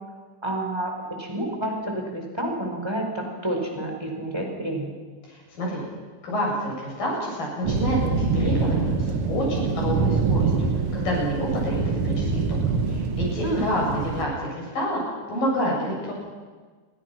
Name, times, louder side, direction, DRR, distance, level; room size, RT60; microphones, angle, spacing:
voice 1, 0.4-0.9 1.2-4.9 13.4-13.7, right 1 dB, 5° right, 1 dB, 4.6 m, -29 dB
voice 2, 5.3-5.8 6.2-10.7 10.9-12.6 12.9-15.0 15.3-16.1, equal, 45° left, -2 dB, 9.5 m, -28 dB
sound 1, 7.6-14.3, right 4 dB, 65° right, 1.3 m, -25 dB
29.5 x 24.5 x 6.1 m, 1.4 s
omnidirectional pair, 5.3 m